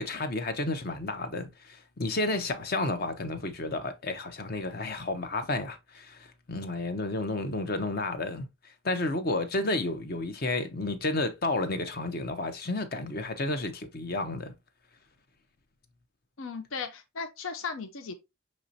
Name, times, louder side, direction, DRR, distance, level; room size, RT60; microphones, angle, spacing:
voice 1, 0.0-8.5 8.8-14.5, left 2 dB, 50° left, 0.7 m, -31 dB
voice 2, 16.4-18.1, left 5 dB, 80° left, 0.7 m, -36 dB
6.4 x 3.0 x 2.7 m
head